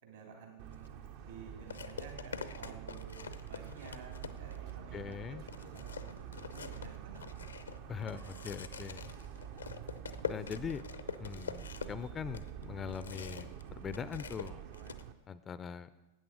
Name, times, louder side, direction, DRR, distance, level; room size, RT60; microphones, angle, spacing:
voice 1, 0.0-7.2 8.1-8.4 8.7-8.9, right 5 dB, 65° right, 1 dB, 3.1 m, -53 dB
Motor vehicle (road) / Siren, 0.6-15.1, right 9 dB, 50° right, 0.6 m, -47 dB
sound 1, 0.7-0.9 1.7-4.7 5.1-5.2 5.5-13.6 13.9-15.0, left 6 dB, 75° left, 0.5 m, -44 dB
voice 2, 4.9-5.4 7.9-9.1 10.3-10.8 11.2-13.5 13.8-14.6 15.3-15.9, left 7 dB, 20° left, 15 dB, 0.4 m, -41 dB
13.0 x 8.7 x 4.9 m, 1.1 s
figure-of-eight pair, 90°, 0 cm